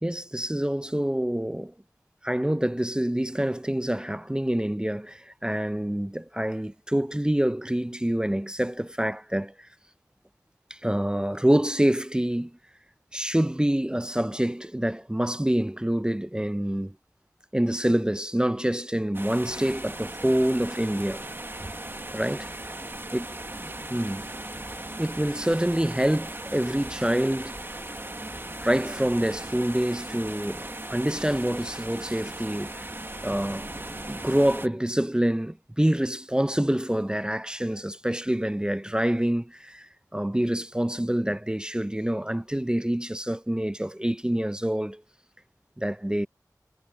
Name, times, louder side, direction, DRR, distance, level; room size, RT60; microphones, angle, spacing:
voice 1, 0.0-1.7 2.2-9.5 10.7-12.5 13.1-16.9 17.5-21.2 22.1-22.5 23.1-23.3 23.9-24.3 25.0-27.5 28.6-32.9 33.2-33.7 34.1-45.0 45.8-46.3, right 1 dB, 10° right, 0.5 m, -26 dB
sound 1, 19.1-34.7, right 1 dB, 35° right, 1.3 m, -38 dB
wide cardioid pair, 40°, 7 cm